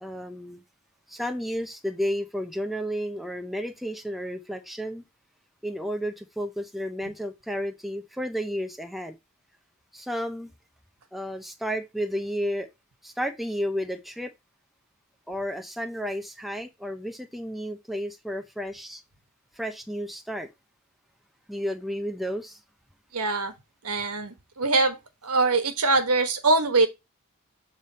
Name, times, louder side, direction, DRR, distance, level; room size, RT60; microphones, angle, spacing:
voice 1, 0.0-0.6 1.1-5.0 5.6-9.2 9.9-10.5 11.1-12.7 13.0-14.3 15.3-19.0 19.5-20.5 21.5-22.6, equal, ahead, 0.6 m, -32 dB
voice 2, 23.1-23.5 23.8-25.0 25.2-26.9, right 3 dB, 85° right, 1.3 m, -23 dB
7.1 x 3.4 x 4.1 m
head